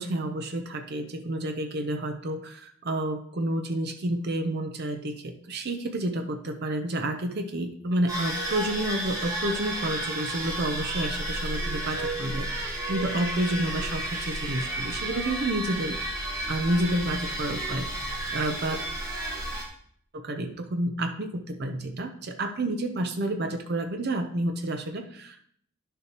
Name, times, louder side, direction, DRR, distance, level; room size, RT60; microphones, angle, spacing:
voice 1, 0.0-17.9 18.3-18.8 20.1-25.4, right 1 dB, 50° right, 5 dB, 0.7 m, -30 dB
sound 1, 8.1-19.6, right 1 dB, 15° right, 1.9 m, -32 dB
11.0 x 6.8 x 3.0 m, 0.63 s
head